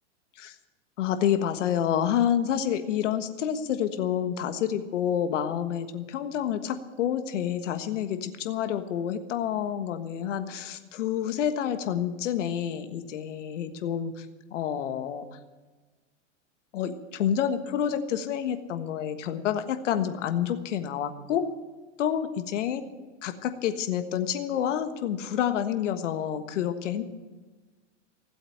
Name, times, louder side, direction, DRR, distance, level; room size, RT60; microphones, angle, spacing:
voice 1, 1.0-14.3 14.5-15.3 16.7-21.5 22.0-22.8 23.2-27.0, left 9 dB, 80° left, 8 dB, 1.5 m, -28 dB
16.0 x 8.1 x 9.8 m, 1.3 s
supercardioid pair, 135°, 36 cm